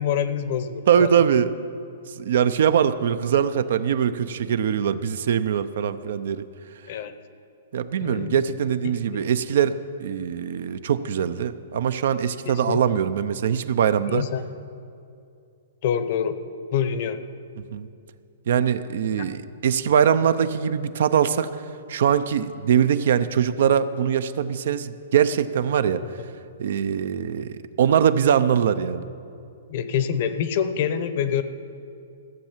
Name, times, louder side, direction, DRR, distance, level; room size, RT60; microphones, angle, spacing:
voice 1, 0.0-1.2 6.9-7.1 8.0-8.4 8.8-8.9 12.4-13.0 14.1-14.5 15.8-16.4 16.7-17.2 19.2-19.3 26.0-26.1 29.7-31.4, left 8 dB, 45° left, 11 dB, 0.7 m, -26 dB
voice 2, 0.9-1.5 2.1-6.4 7.7-14.2 17.7-17.9 18.5-21.5 21.9-26.0 26.6-29.1, right 8 dB, 60° right, 13 dB, 0.5 m, -22 dB
15.0 x 7.4 x 7.3 m, 2.5 s
hypercardioid pair, 160°, 0 cm